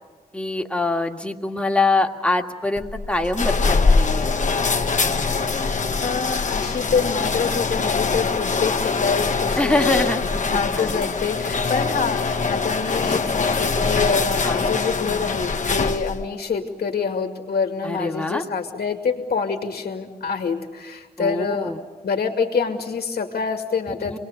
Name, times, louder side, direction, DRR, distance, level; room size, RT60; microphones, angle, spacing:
voice 1, 0.3-4.3 9.6-10.9 13.0-13.2 14.4-14.7 17.8-18.4 21.2-21.8 24.0-24.2, left 2 dB, 5° left, 3 dB, 1.9 m, -24 dB
sound 1, 2.8-16.3, left 4 dB, 50° left, 1.4 m, -23 dB
voice 2, 6.0-10.1 10.5-21.7 22.0-24.2, left 5 dB, 90° left, 3 dB, 2.4 m, -26 dB
28.5 x 21.0 x 8.2 m, 1.3 s
wide cardioid pair, 130°, 16 cm